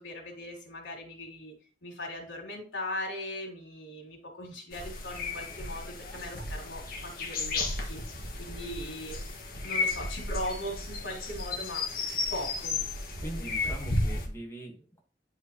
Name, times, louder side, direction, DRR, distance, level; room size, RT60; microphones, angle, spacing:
voice 1, 0.0-1.5 1.8-8.0 8.4-11.9 12.3-12.8 13.2-13.7, left 1 dB, 85° left, 0 dB, 3.1 m, -39 dB
sound 1, 4.7-14.3, left 3 dB, 55° left, 1.8 m, -33 dB
voice 2, 13.2-15.0, right 1 dB, 15° left, -1 dB, 1.5 m, -42 dB
10.5 x 5.1 x 3.0 m, 0.36 s
head